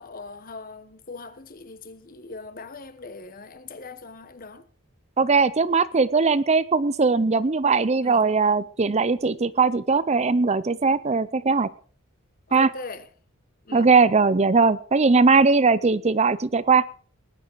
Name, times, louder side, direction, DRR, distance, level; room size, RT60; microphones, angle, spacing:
voice 1, 0.0-4.7 8.0-8.3 12.5-13.1 13.6-13.9, left 3 dB, 40° left, 1.1 m, -40 dB
voice 2, 5.2-11.7 12.5-12.7 13.7-16.8, right 4 dB, 30° right, 0.5 m, -20 dB
19.5 x 9.9 x 4.6 m
head